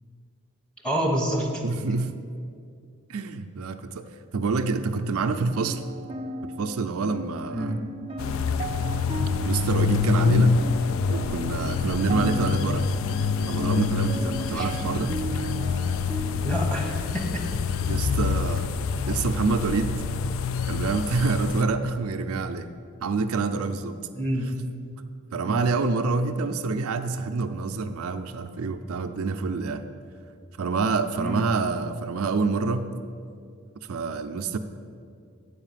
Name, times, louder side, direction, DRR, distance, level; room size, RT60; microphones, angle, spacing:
voice 1, 0.8-1.5 7.5-7.8 14.5-14.7 16.4-17.4 24.1-24.4 25.4-25.6 31.2-31.4, equal, 5° left, -2 dB, 1.2 m, -27 dB
voice 2, 1.6-2.1 3.1-4.0 4.3-5.8 6.4-7.8 9.5-10.6 11.1-12.9 13.5-15.2 17.9-18.7 19.1-19.9 20.7-22.7 23.0-24.0 25.3-29.8 30.6-32.9 33.9-34.6, right 4 dB, 80° right, 8 dB, 0.5 m, -27 dB
sound 1, 5.5-16.4, right 2 dB, 25° right, 0.5 m, -37 dB
sound 2, 8.2-21.6, left 5 dB, 65° left, 0.3 m, -26 dB
8.5 x 4.9 x 7.3 m, 2.3 s
head